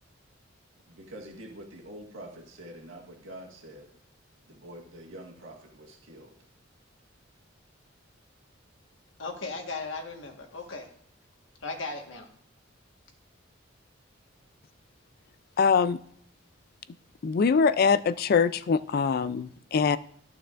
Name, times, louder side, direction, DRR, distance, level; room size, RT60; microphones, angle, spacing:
voice 1, 0.9-3.9 4.5-6.4, right 1 dB, 80° right, -1 dB, 1.7 m, -45 dB
voice 2, 9.2-10.9 11.6-12.3, left 3 dB, 75° left, 3 dB, 1.5 m, -37 dB
voice 3, 15.6-16.0 17.2-20.0, left 5 dB, 50° left, 15 dB, 0.4 m, -23 dB
14.0 x 6.8 x 2.5 m, 0.69 s
head